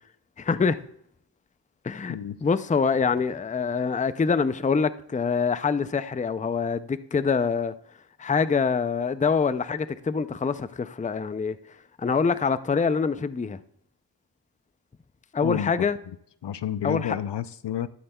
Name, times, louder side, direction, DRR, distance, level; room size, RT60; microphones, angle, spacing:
voice 1, 0.4-0.8 1.8-2.2 2.4-7.7 8.2-11.6 12.0-13.6 15.3-16.0 16.8-17.2, left 5 dB, 20° left, 0.4 m, -25 dB
voice 2, 15.4-15.9 16.4-17.9, left 10 dB, 75° left, 0.5 m, -30 dB
12.5 x 12.0 x 2.3 m
wide cardioid pair, 60°, 42 cm